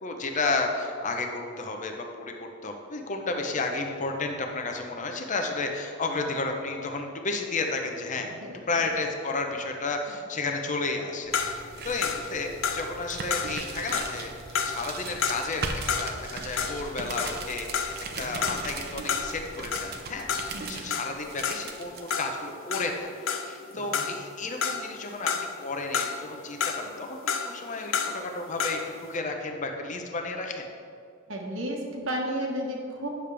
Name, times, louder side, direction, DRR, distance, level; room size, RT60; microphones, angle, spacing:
voice 1, 0.0-2.3 2.6-8.3 8.7-14.3 14.6-23.1 23.4-25.3 25.6-30.7, left 3 dB, 40° left, 3 dB, 0.7 m, -32 dB
voice 2, 8.1-8.9 10.1-10.2 18.1-18.5 20.5-20.8 23.7-24.0 31.3-33.1, equal, 75° right, 0 dB, 1.4 m, -34 dB
sound 1, 11.2-22.1, right 4 dB, 55° right, 0.7 m, -39 dB
sound 2, 11.3-16.3 16.6-23.7 23.9-25.6 25.9-28.9, left 6 dB, 70° left, 0.6 m, -31 dB
9.0 x 6.8 x 3.4 m, 2.4 s
head